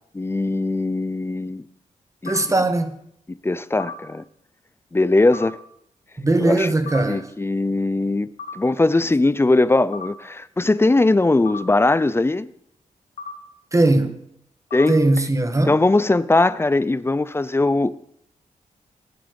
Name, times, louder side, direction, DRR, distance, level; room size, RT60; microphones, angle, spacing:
voice 1, 0.1-1.6 2.2-2.3 3.4-4.2 4.9-5.6 6.4-6.7 7.1-12.5 14.7-15.0 15.7-17.9, left 2 dB, 20° left, 0.6 m, -20 dB
voice 2, 2.2-2.9 6.2-7.3 13.7-14.2 14.9-15.8, right 2 dB, 25° right, 1.6 m, -19 dB
sound 1, 2.3-2.4 3.8-3.9 5.3-5.5 6.9-7.0 8.4-8.5 9.9-10.1 11.5-11.6 13.2-13.3 14.7-14.9, left 6 dB, 85° left, 2.0 m, -33 dB
19.0 x 7.7 x 5.3 m
cardioid pair, 70°, 13 cm